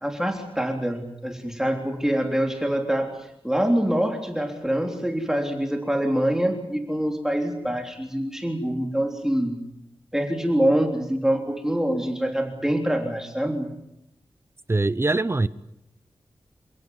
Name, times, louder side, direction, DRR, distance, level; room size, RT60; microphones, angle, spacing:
voice 1, 0.0-3.1 3.4-9.6 10.1-13.7, right 1 dB, 5° right, 4 dB, 3.5 m, -25 dB
voice 2, 14.7-15.5, right 2 dB, 25° right, 16 dB, 0.9 m, -22 dB
28.5 x 17.0 x 9.6 m, 0.82 s
wide cardioid pair, 85°, 9 cm